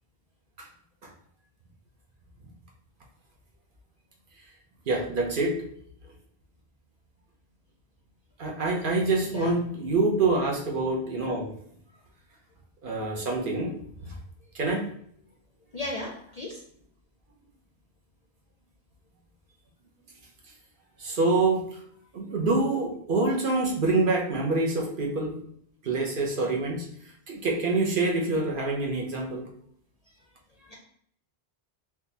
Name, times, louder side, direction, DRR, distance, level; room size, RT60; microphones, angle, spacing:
voice 1, 4.9-5.6 8.4-11.5 12.8-13.7 14.0-14.1 14.5-14.9 21.0-21.8 22.1-25.4 25.8-26.9 27.3-29.5, right 3 dB, 55° right, 0 dB, 0.8 m, -26 dB
voice 2, 15.7-16.6 30.7-30.8, left 2 dB, 50° left, -1 dB, 0.5 m, -35 dB
3.8 x 2.9 x 2.7 m, 0.65 s
omnidirectional pair, 1.2 m